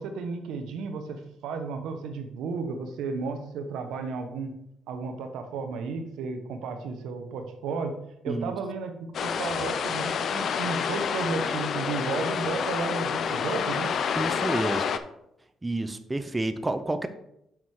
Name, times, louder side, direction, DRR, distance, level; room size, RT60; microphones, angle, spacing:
voice 1, 0.0-4.5 4.9-7.9 8.2-13.9, right 4 dB, 85° right, 6 dB, 1.0 m, -33 dB
sound 1, 9.1-15.0, left 7 dB, 60° left, 0.5 m, -28 dB
voice 2, 14.2-14.8 15.6-17.1, right 2 dB, 15° right, 9 dB, 0.6 m, -29 dB
6.2 x 5.4 x 4.7 m, 0.79 s
cardioid pair, 90°, 0 cm